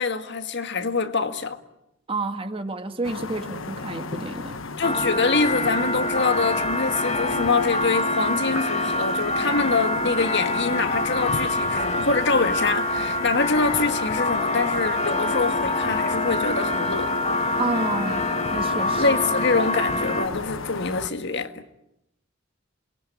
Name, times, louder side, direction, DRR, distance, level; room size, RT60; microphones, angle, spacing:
voice 1, 0.0-1.6 4.8-17.1 19.0-21.5, left 4 dB, 60° left, 1.9 m, -25 dB
voice 2, 2.1-4.6 17.6-19.0, right 3 dB, 25° right, 1.9 m, -30 dB
sound 1, 3.0-21.1, left 4 dB, 75° left, 1.3 m, -35 dB
sound 2, 4.8-20.3, left 2 dB, 35° left, 2.1 m, -25 dB
28.0 x 22.0 x 9.4 m
head